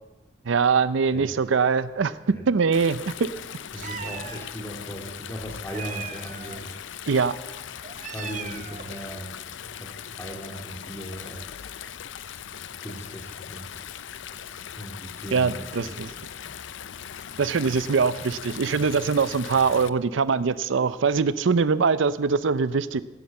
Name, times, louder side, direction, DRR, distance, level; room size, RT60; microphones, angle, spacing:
voice 1, 0.5-2.2 2.5-3.3 7.1-7.4 15.3-16.1 17.4-23.0, right 5 dB, 90° right, 16 dB, 0.5 m, -23 dB
Stream, 2.7-19.9, left 9 dB, 80° left, 0.5 m, -40 dB
voice 2, 3.7-6.8 8.0-11.7 12.1-14.1 14.8-16.5, equal, 15° left, 1 dB, 2.3 m, -39 dB
Meow, 3.8-4.5 5.7-6.6 7.8-9.0, right 7 dB, 40° right, 0.8 m, -38 dB
16.0 x 10.0 x 7.5 m, 1.1 s
head